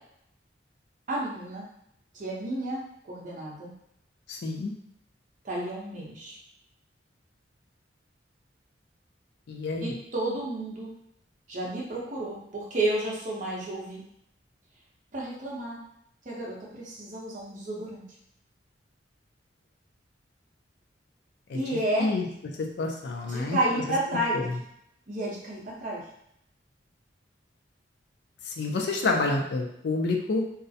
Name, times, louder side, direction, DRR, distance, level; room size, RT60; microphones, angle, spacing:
voice 1, 1.1-1.7 2.1-2.8 3.1-3.7 5.4-6.3 9.8-10.9 11.5-14.0 15.1-15.8 16.3-18.0 21.5-22.1 23.3-24.4 25.1-26.0, right 1 dB, 45° right, -4 dB, 0.6 m, -31 dB
voice 2, 4.3-4.7 9.5-9.9 21.5-21.6 22.0-22.3 22.8-23.8 24.1-24.6 28.5-30.4, left 3 dB, 65° left, 2 dB, 0.4 m, -28 dB
2.4 x 2.0 x 2.6 m, 0.74 s
head